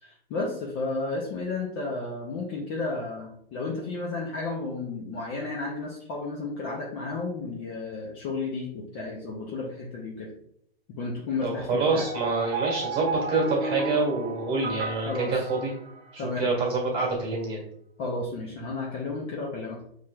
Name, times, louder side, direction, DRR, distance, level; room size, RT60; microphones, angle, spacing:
voice 1, 0.0-10.3 10.9-12.0 15.1-15.4 16.2-16.5 18.0-19.8, left 3 dB, 25° left, -2 dB, 0.5 m, -32 dB
voice 2, 11.4-15.7 16.1-17.6, right 3 dB, 20° right, -3 dB, 1.6 m, -27 dB
sound 1, 12.0-16.3, right 2 dB, 55° right, 0.9 m, -33 dB
5.6 x 3.2 x 2.3 m, 0.69 s
hypercardioid pair, 150°, 30 cm